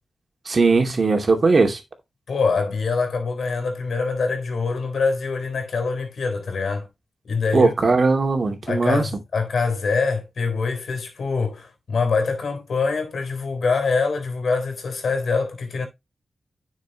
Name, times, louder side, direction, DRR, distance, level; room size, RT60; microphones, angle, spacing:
voice 1, 0.5-1.8 7.5-9.1, right 3 dB, 55° right, 2.5 m, -19 dB
voice 2, 2.3-6.9 7.2-7.7 8.7-15.9, left 4 dB, 80° left, 3.6 m, -24 dB
9.9 x 6.6 x 2.9 m
cardioid pair, 60°, 0 cm